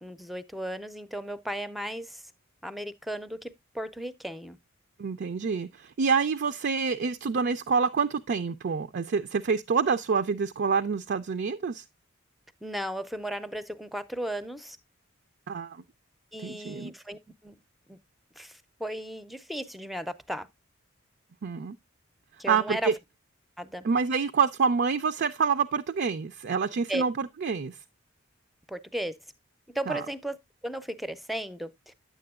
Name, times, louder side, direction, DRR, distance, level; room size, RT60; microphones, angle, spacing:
voice 1, 0.0-2.3 2.6-4.6 12.6-14.8 16.3-17.6 17.9-18.0 18.4-20.5 22.4-22.9 23.6-23.8 26.9-27.0 28.7-29.2 29.7-30.4 30.6-31.9, right 1 dB, ahead, 0.5 m, -35 dB
voice 2, 5.0-11.8 15.5-15.8 16.4-16.9 21.4-21.8 22.5-22.9 23.8-27.8 29.9-30.0, right 5 dB, 55° right, 0.4 m, -27 dB
9.3 x 7.7 x 2.3 m
head